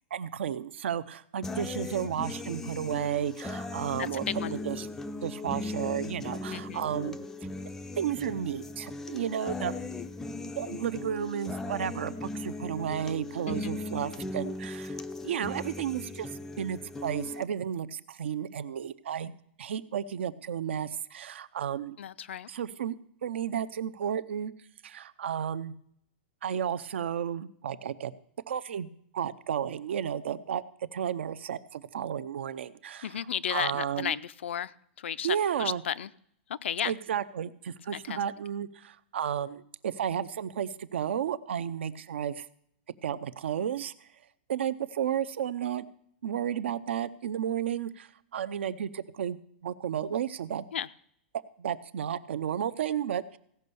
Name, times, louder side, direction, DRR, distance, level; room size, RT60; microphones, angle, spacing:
voice 1, 0.1-4.9 5.2-7.2 8.0-10.0 10.5-16.3 16.6-19.3 19.6-22.0 22.5-23.0 23.2-24.5 24.8-25.7 26.4-28.1 28.5-28.9 29.1-30.6 30.9-33.1 33.5-34.1 35.2-35.8 36.8-42.5 43.0-43.9 44.5-45.9 46.2-50.6 51.6-53.4, right 9 dB, 75° right, 15 dB, 0.7 m, -33 dB
sound 1, 1.4-17.4, left 2 dB, 5° left, 0.4 m, -38 dB
voice 2, 4.0-4.5 6.5-6.8 13.5-13.8 22.0-22.5 33.0-36.1 36.5-36.9 37.9-38.2 50.7-50.9, left 9 dB, 90° left, 18 dB, 0.5 m, -34 dB
16.5 x 5.5 x 6.9 m, 0.70 s
supercardioid pair, 170°, 6 cm